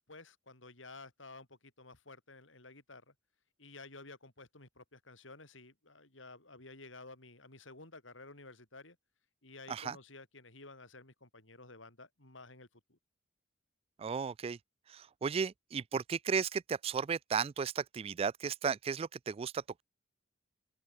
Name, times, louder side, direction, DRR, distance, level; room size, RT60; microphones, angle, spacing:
voice 1, 0.0-3.1 3.6-9.0 9.4-13.0, left 3 dB, 80° left, 6.5 m, -53 dB
voice 2, 14.0-14.6 14.9-19.8, right 6 dB, 30° right, 0.3 m, -35 dB
open air
head